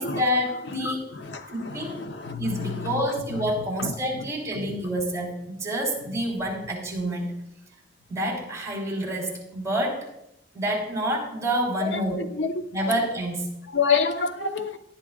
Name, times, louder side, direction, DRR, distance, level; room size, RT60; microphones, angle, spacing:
voice 1, 0.0-1.0 1.5-2.0 2.4-7.4 8.1-10.1 10.5-12.3 12.7-13.5, equal, 15° right, 4.3 m, -28 dB
voice 2, 0.7-1.4 1.6-2.9 3.8-3.9 4.6-4.7 12.4-12.5 12.8-12.9 13.7-14.8, left 5 dB, 80° left, 1.0 m, -27 dB
18.5 x 11.5 x 2.5 m
head